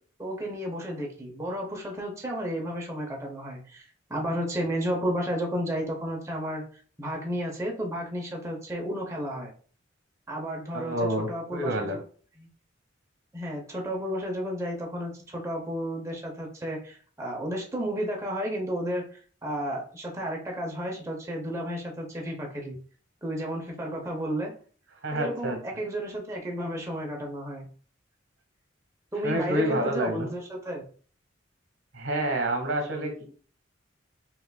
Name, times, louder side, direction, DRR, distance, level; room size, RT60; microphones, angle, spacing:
voice 1, 0.2-6.6 7.0-9.5 10.3-12.0 12.4-12.5 13.3-22.8 23.2-24.5 25.1-27.7 29.1-30.8, equal, 15° right, 0 dB, 0.7 m, -32 dB
voice 2, 10.7-12.0 25.0-25.6 29.2-30.3 31.9-33.3, right 1 dB, 80° right, 5 dB, 1.0 m, -28 dB
5.5 x 2.4 x 2.2 m, 0.44 s
head